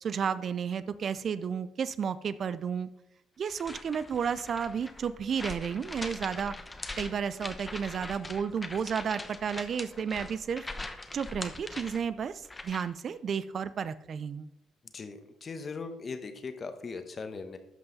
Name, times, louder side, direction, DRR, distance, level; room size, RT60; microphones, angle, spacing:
voice 1, 0.0-2.9 3.4-6.5 7.0-10.6 11.1-14.5, right 7 dB, 50° right, 15 dB, 0.4 m, -32 dB
sound 1, 3.5-13.0, left 2 dB, 20° left, 0.9 m, -42 dB
voice 2, 14.9-17.6, left 4 dB, 40° left, 8 dB, 1.1 m, -39 dB
11.5 x 5.5 x 4.0 m, 0.85 s
supercardioid pair, 80°, 0 cm